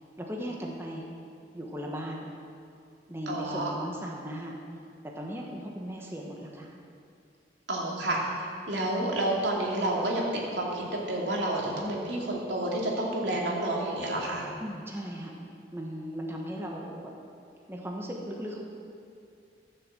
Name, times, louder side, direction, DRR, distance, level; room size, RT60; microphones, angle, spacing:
voice 1, 0.2-1.0 1.5-2.3 3.1-4.6 5.0-6.7 11.8-12.1 14.6-15.3 15.7-17.1 17.7-18.6, equal, 15° right, -1 dB, 1.3 m, -37 dB
voice 2, 3.3-3.7 7.7-10.3 10.5-14.5, right 1 dB, 85° right, -3 dB, 2.7 m, -30 dB
14.0 x 6.8 x 7.6 m, 2.4 s
head